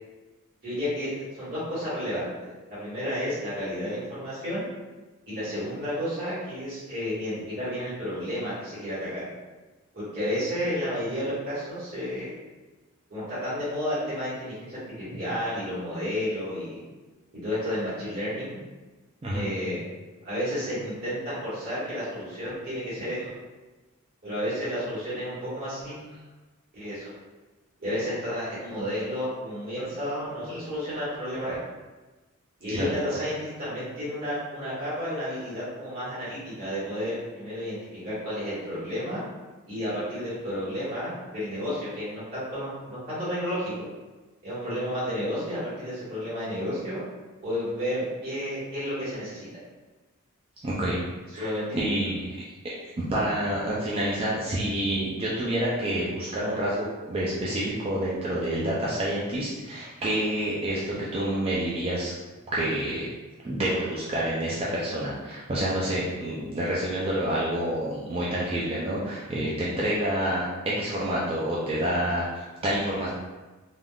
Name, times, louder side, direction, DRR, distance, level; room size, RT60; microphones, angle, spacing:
voice 1, 0.6-4.7 5.3-9.2 9.9-12.3 13.1-16.8 17.3-18.6 19.3-19.8 20.2-23.3 24.2-26.0 26.7-27.0 27.8-31.6 32.6-39.2 39.7-43.9 44.4-47.0 47.4-49.5 51.3-51.8, equal, 50° right, -12 dB, 1.4 m, -31 dB
voice 2, 50.6-51.0 51.3-62.1 62.5-63.1 63.4-73.1, right 1 dB, 25° right, -6 dB, 0.4 m, -28 dB
3.5 x 2.5 x 2.3 m, 1.2 s
head